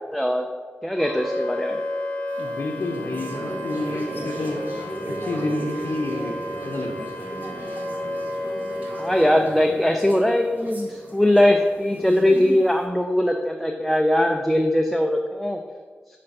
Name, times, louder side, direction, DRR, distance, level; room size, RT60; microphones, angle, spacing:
voice 1, 0.1-0.4 0.8-1.8 9.0-15.6, left 1 dB, ahead, 3 dB, 0.3 m, -20 dB
Wind instrument woodwind instrument, 0.9-9.5, left 1 dB, 25° left, 0.8 m, -32 dB
sound 1, 2.3-12.8, right 1 dB, 45° right, 1.1 m, -36 dB
voice 2, 2.4-4.6 5.1-6.4 6.6-7.1, left 2 dB, 65° left, 0 dB, 0.6 m, -29 dB
5.7 x 3.3 x 5.3 m, 1.6 s
wide cardioid pair, 160°, 4 cm